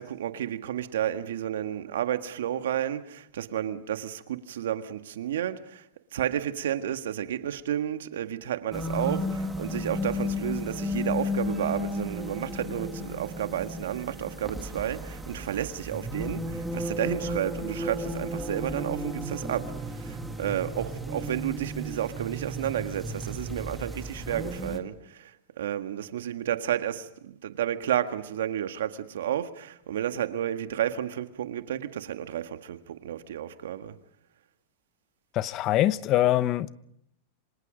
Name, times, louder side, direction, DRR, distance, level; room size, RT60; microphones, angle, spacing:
voice 1, 0.0-5.9 6.1-34.0, right 10 dB, 85° right, 1.6 m, -31 dB
sound 1, 8.7-24.8, left 1 dB, 5° right, 2.1 m, -34 dB
voice 2, 35.4-36.7, left 13 dB, 40° left, 0.9 m, -23 dB
27.5 x 25.5 x 5.1 m
supercardioid pair, 135°, 0 cm